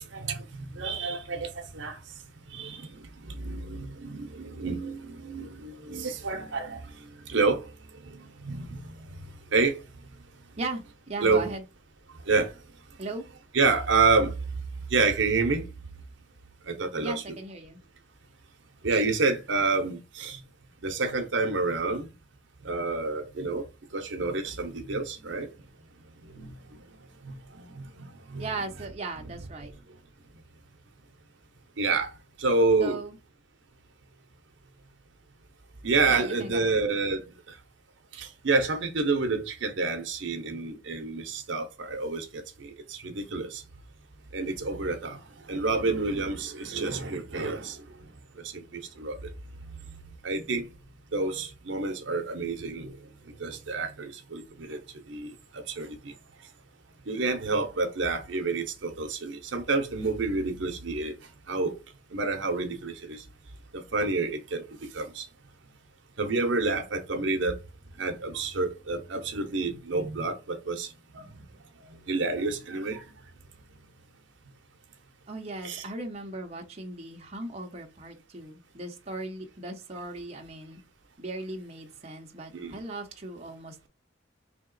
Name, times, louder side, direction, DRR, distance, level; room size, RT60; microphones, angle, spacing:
voice 1, 0.0-2.0 2.5-6.8 7.3-7.7 8.4-8.9 9.5-9.8 11.2-11.5 12.3-12.5 13.5-14.3 14.9-15.6 16.7-17.2 18.8-20.4 20.8-22.1 22.6-23.6 23.9-25.7 26.3-26.5 27.2-28.5 31.8-32.1 32.4-33.0 35.8-37.2 38.2-43.6 44.3-45.2 45.5-47.8 48.5-49.2 50.2-50.7 51.1-52.9 53.4-54.8 55.1-56.1 57.1-61.1 61.5-61.8 62.1-63.2 63.7-65.2 66.2-67.6 68.0-71.3 72.1-73.1 75.6-75.8 82.5-82.8, right 3 dB, 70° right, 0.7 m, -28 dB
voice 2, 10.6-11.6 13.0-13.2 17.0-17.8 28.4-29.7 32.8-33.2 36.1-36.7 75.3-80.8 81.2-83.9, right 2 dB, 35° right, 0.7 m, -38 dB
3.5 x 2.8 x 3.8 m
head